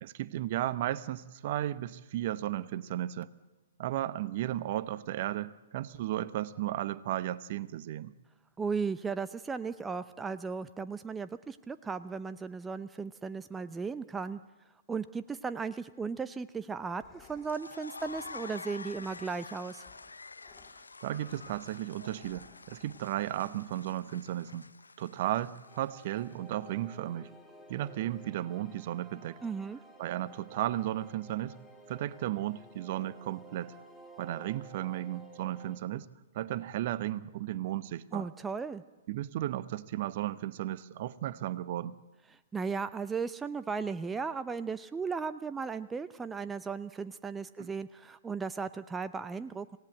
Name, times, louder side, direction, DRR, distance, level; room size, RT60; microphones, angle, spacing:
voice 1, 0.0-3.3 3.8-8.1 21.0-24.7 25.0-27.3 27.7-29.4 30.0-31.6 31.9-33.7 34.2-36.1 36.3-38.3 39.1-41.9 47.6-47.7, right 13 dB, 45° right, 16 dB, 0.9 m, -34 dB
voice 2, 8.6-14.4 14.9-19.8 29.4-29.8 38.1-38.8 42.3-49.8, right 5 dB, 10° right, 12 dB, 0.7 m, -36 dB
sound 1, 16.7-24.7, left 5 dB, 20° left, 2.5 m, -62 dB
sound 2, 17.2-26.6, left 4 dB, 80° left, 0.7 m, -48 dB
sound 3, 25.7-35.8, right 2 dB, 5° left, 3.1 m, -53 dB
26.5 x 17.5 x 7.8 m, 1.1 s
figure-of-eight pair, 115°, 0 cm